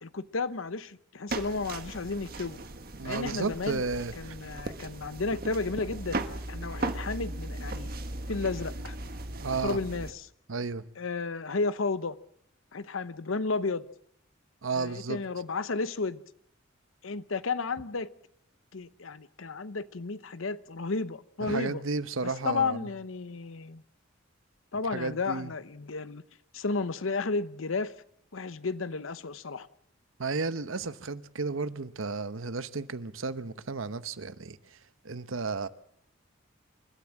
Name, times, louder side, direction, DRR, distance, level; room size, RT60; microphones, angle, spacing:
voice 1, 0.0-2.6 3.0-3.8 4.1-6.2 6.5-7.9 8.3-9.0 9.6-10.3 11.0-12.2 12.7-13.9 14.7-16.2 17.0-18.1 18.7-21.8 22.2-23.8 24.7-26.2 26.5-27.9 28.3-29.7, left 4 dB, 85° left, 0.9 m, -32 dB
sound 1, 1.3-10.1, right 2 dB, 45° right, 1.5 m, -37 dB
voice 2, 3.0-4.4 9.4-9.8 10.5-10.8 14.6-15.2 21.4-22.9 24.9-25.5 30.2-34.8 35.0-35.7, right 4 dB, 85° right, 1.0 m, -33 dB
28.0 x 13.0 x 7.5 m
head